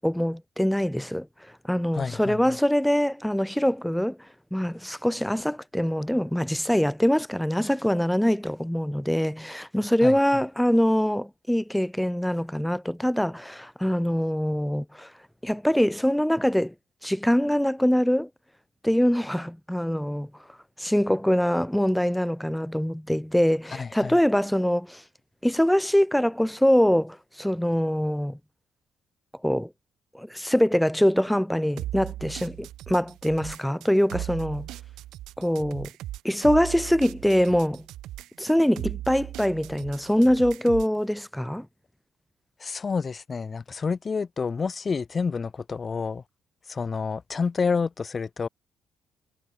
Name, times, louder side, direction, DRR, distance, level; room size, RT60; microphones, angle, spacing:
voice 1, 0.0-1.3 1.6-4.2 4.5-15.1 15.4-16.7 17.0-18.3 18.8-20.3 20.8-25.0 25.4-28.4 29.4-29.7 30.1-34.7 35.4-35.9 36.2-37.8 38.4-41.7, equal, 5° left, 1.0 m, -24 dB
voice 2, 1.9-2.6 10.0-10.2 23.7-24.2 42.6-46.2 46.7-48.5, left 5 dB, 35° left, 4.9 m, -29 dB
sound 1, 31.8-41.0, right 14 dB, 85° right, 1.1 m, -38 dB
cardioid pair, 90°, 0 cm